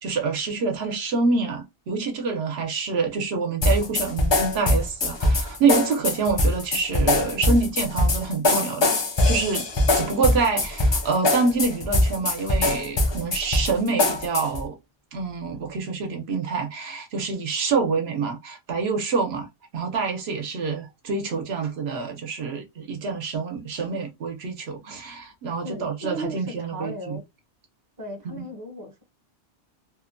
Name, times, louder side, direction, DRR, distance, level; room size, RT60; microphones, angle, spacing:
voice 1, 0.0-9.0 9.3-9.7 9.9-14.8 15.1-19.5 19.7-27.2 28.2-28.5, right 4 dB, 70° right, 0.9 m, -26 dB
sound 1, 3.6-14.6, left 2 dB, 50° left, 0.3 m, -22 dB
voice 2, 25.6-27.2 28.0-29.0, equal, 25° right, 0.6 m, -36 dB
2.7 x 2.1 x 2.5 m
omnidirectional pair, 1.2 m